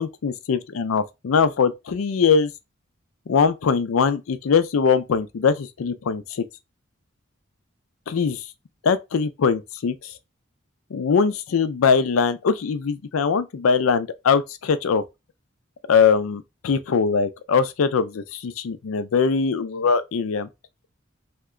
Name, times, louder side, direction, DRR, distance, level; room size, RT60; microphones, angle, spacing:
voice 1, 0.0-2.5 3.3-6.4 8.1-8.5 8.8-10.1 10.9-15.0 15.9-20.5, left 5 dB, 90° left, 0.4 m, -21 dB
2.9 x 2.2 x 3.6 m
head